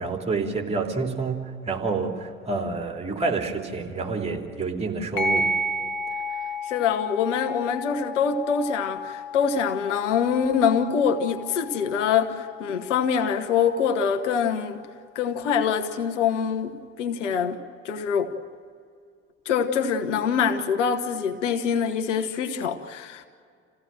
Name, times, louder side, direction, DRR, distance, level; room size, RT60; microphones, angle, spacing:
voice 1, 0.0-5.5, right 4 dB, 15° right, 3.4 m, -28 dB
sound 1, 5.2-14.2, left 1 dB, 60° left, 1.9 m, -33 dB
voice 2, 6.7-14.8 15.1-17.6 17.8-18.3 19.4-23.3, left 7 dB, 75° left, 1.4 m, -24 dB
28.5 x 16.0 x 7.7 m
figure-of-eight pair, 65°, 37 cm